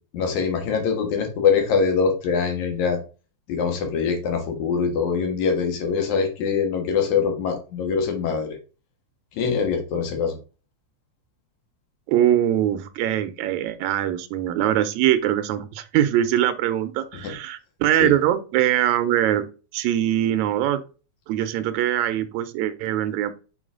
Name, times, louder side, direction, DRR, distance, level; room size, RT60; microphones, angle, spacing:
voice 1, 0.1-3.0 3.5-8.5 9.4-10.4 17.2-17.3 18.0-18.1, left 6 dB, 80° left, 3 dB, 2.8 m, -23 dB
voice 2, 12.1-19.5 19.7-20.8 21.3-23.3, right 12 dB, 85° right, 11 dB, 2.0 m, -22 dB
7.0 x 3.9 x 3.7 m, 0.34 s
omnidirectional pair, 3.3 m